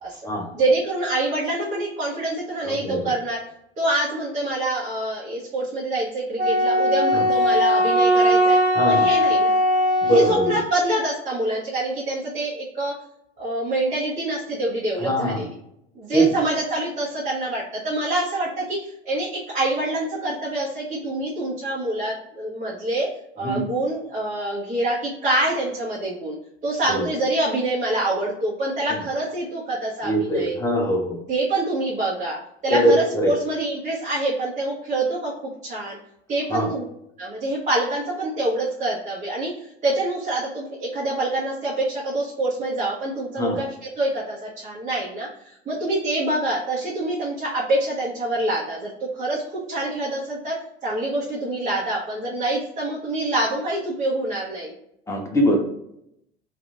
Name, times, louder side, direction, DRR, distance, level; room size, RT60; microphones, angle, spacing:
voice 1, 0.0-3.4 3.8-8.6 8.8-9.5 10.0-12.9 13.4-15.6 15.9-23.1 23.4-26.3 26.6-30.6 31.3-36.0 36.3-36.8 37.2-49.4 49.7-50.5 50.8-54.7, right 1 dB, 25° right, -6 dB, 0.9 m, -26 dB
voice 2, 2.6-3.0 7.1-7.3 8.7-9.1 10.1-10.5 15.0-15.4 16.1-16.3 23.4-23.6 26.9-27.1 30.0-31.2 32.7-33.3 36.5-36.7 43.4-43.6 55.1-55.6, right 1 dB, 10° left, 2 dB, 0.7 m, -21 dB
Wind instrument woodwind instrument, 6.4-10.6, equal, 80° right, 1.0 m, -19 dB
2.9 x 2.5 x 2.5 m, 0.78 s
figure-of-eight pair, 80°, 32 cm